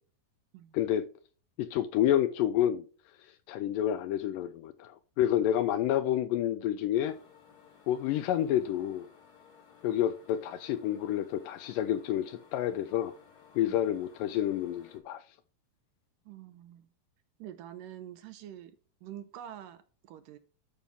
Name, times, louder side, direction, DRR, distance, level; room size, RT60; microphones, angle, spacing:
voice 1, 0.7-1.1 1.6-2.9 3.5-7.2 7.9-9.1 9.8-13.1 13.6-15.2, left 11 dB, 80° left, 2.0 m, -29 dB
sound 1, 7.0-15.0, left 7 dB, 40° left, 1.5 m, -58 dB
voice 2, 16.3-16.9 17.4-20.4, right 11 dB, 80° right, 2.1 m, -46 dB
11.5 x 5.4 x 3.5 m
omnidirectional pair, 4.2 m